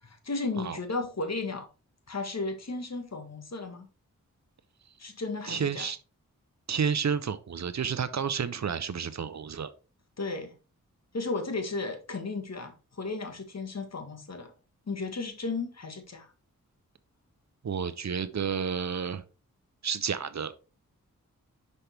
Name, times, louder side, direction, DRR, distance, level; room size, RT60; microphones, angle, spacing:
voice 1, 0.0-1.7 2.1-3.9 5.0-5.9 10.2-10.5 11.1-14.5 14.9-16.3, left 3 dB, 50° left, 1.5 m, -34 dB
voice 2, 5.5-6.0 6.7-9.7 17.6-19.2 19.8-20.5, right 6 dB, 55° right, 0.7 m, -30 dB
5.7 x 5.4 x 3.4 m
cardioid pair, 40°, 34 cm